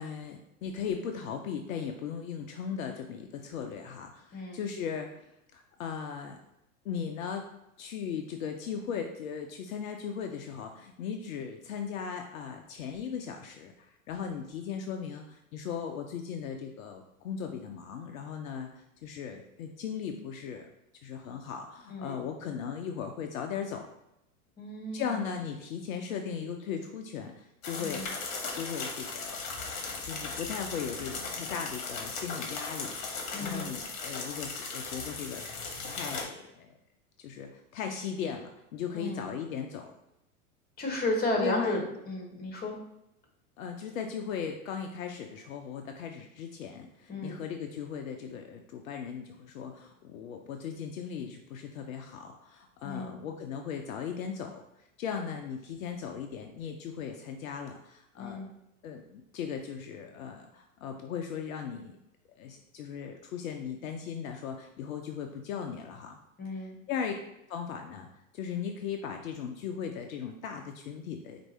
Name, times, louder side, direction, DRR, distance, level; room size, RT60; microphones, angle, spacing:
voice 1, 0.0-5.1 5.5-6.4 6.8-7.5 7.8-20.7 21.0-23.9 24.9-28.1 28.5-29.4 30.0-32.9 33.4-35.4 35.9-36.7 37.2-39.9 41.4-41.9 43.6-58.4 58.8-62.0 62.4-66.2 66.6-67.1 67.5-71.4, left 7 dB, 65° left, 4 dB, 0.6 m, -38 dB
voice 2, 21.9-22.2 24.6-25.2 27.8-28.1 33.3-33.7 38.9-39.3 40.8-41.8 42.1-42.8 47.1-47.4 52.8-53.2 58.1-58.5 66.4-66.8, left 2 dB, 20° left, 1 dB, 1.3 m, -33 dB
sound 1, 27.6-36.2, left 4 dB, 40° left, 1.2 m, -37 dB
4.5 x 2.6 x 4.1 m, 0.85 s
figure-of-eight pair, 90°, 44 cm